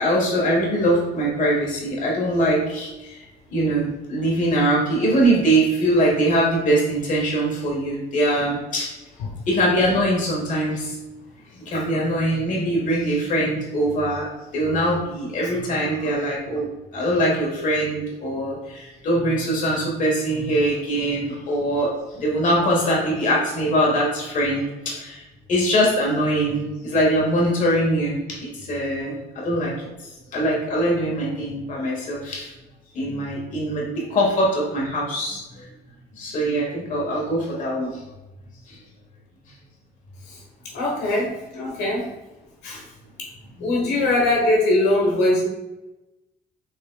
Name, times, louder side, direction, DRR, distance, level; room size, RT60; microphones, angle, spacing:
voice 1, 0.0-3.2 3.5-8.9 9.5-10.9 11.6-14.3 14.5-16.7 16.9-25.2 25.5-29.2 29.4-29.7 30.3-32.5 32.9-35.4 36.2-38.0 38.7-38.8 43.6-43.8, right 1 dB, 50° left, -2 dB, 1.3 m, -22 dB
voice 2, 40.7-42.0 42.6-42.8 43.2-43.3 43.6-45.5, left 1 dB, 90° left, -2 dB, 1.2 m, -21 dB
6.2 x 3.6 x 2.3 m, 1.0 s
cardioid pair, 110°, 17 cm